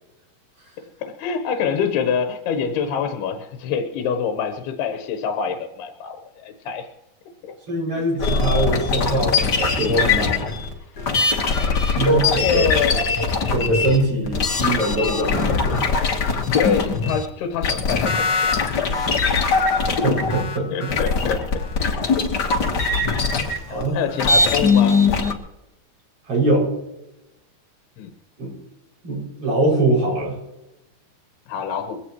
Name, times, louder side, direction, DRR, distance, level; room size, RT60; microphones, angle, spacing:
voice 1, 1.0-6.9 7.4-7.5 11.9-13.2 16.5-18.6 20.7-22.0 23.4-25.0 28.0-28.1 31.5-32.0, left 7 dB, 85° left, 6 dB, 3.2 m, -26 dB
voice 2, 7.7-10.4 12.0-12.7 13.5-15.9 20.0-20.9 23.7-23.9 26.3-26.7 28.4-28.5 29.0-30.4, right 2 dB, 35° right, -2 dB, 7.3 m, -22 dB
sound 1, 8.2-17.3 17.5-25.3, left 4 dB, 60° left, 1.1 m, -21 dB
22.5 x 17.0 x 3.1 m, 0.89 s
omnidirectional pair, 4.5 m